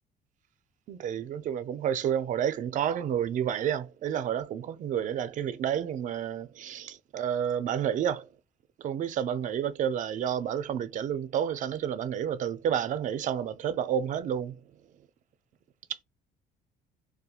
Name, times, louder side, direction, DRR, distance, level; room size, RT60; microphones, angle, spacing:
voice 1, 0.9-8.3 8.8-14.5, right 9 dB, 50° right, 0.4 m, -30 dB
2.7 x 2.2 x 2.3 m
cardioid pair, 110°, 17 cm